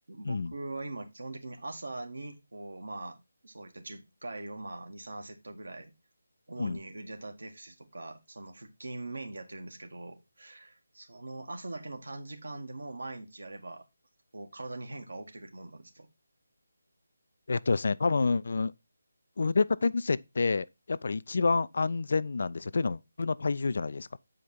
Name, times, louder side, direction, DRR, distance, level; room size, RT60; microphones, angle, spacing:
voice 1, 0.1-3.2 3.4-5.9 6.5-13.8 14.3-16.1, right 2 dB, 65° right, 1.8 m, -42 dB
voice 2, 17.5-18.7 19.4-24.2, left 4 dB, 50° left, 0.3 m, -28 dB
8.3 x 5.0 x 4.3 m
figure-of-eight pair, 155°, 0 cm